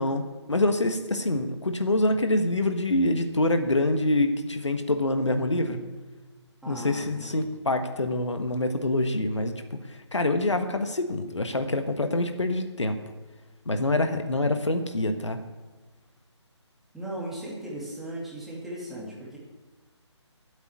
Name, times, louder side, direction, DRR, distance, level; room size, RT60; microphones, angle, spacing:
voice 1, 0.0-5.8 6.7-13.0 13.6-15.4, left 2 dB, 75° left, 7 dB, 1.4 m, -26 dB
voice 2, 6.6-7.5 16.9-19.4, right 1 dB, ahead, -6 dB, 2.6 m, -37 dB
11.0 x 8.2 x 9.6 m, 1.3 s
figure-of-eight pair, 145°, 15 cm